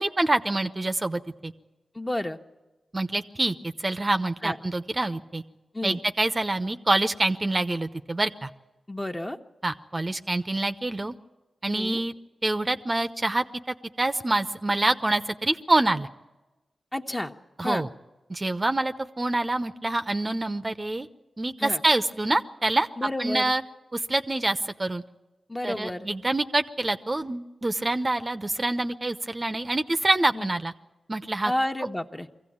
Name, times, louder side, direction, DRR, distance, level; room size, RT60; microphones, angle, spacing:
voice 1, 0.0-1.5 2.9-5.4 5.8-8.5 9.6-11.1 11.6-12.1 12.4-16.1 17.6-17.9 18.3-21.1 21.4-22.9 23.2-23.6 23.9-25.0 25.6-30.7 31.1-31.5, right 2 dB, 35° right, 9 dB, 0.8 m, -26 dB
voice 2, 1.9-2.4 4.4-4.6 5.7-6.0 8.9-9.4 11.7-12.0 16.9-17.3 17.6-17.8 21.6-21.8 23.0-23.5 25.5-26.1 30.3-30.5 31.4-32.3, left 1 dB, 20° left, 4 dB, 1.3 m, -30 dB
22.5 x 15.5 x 8.7 m, 1.1 s
cardioid pair, 40°, 0 cm